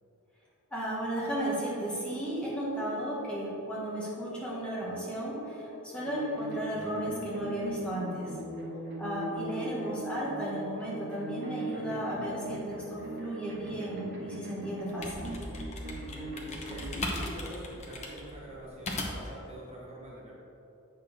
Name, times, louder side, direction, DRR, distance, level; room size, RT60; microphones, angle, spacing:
voice 1, 0.7-8.3 9.0-15.3, right 1 dB, 5° left, -7 dB, 1.6 m, -34 dB
sound 1, 2.2-16.1, left 2 dB, 60° left, 0.7 m, -48 dB
sound 2, 6.0-16.9, right 1 dB, 55° right, 1.7 m, -40 dB
sound 3, 14.9-19.4, left 2 dB, 30° left, 0.9 m, -38 dB
voice 2, 16.7-20.3, right 1 dB, 30° right, -5 dB, 1.1 m, -44 dB
8.1 x 6.4 x 3.6 m, 2.8 s
head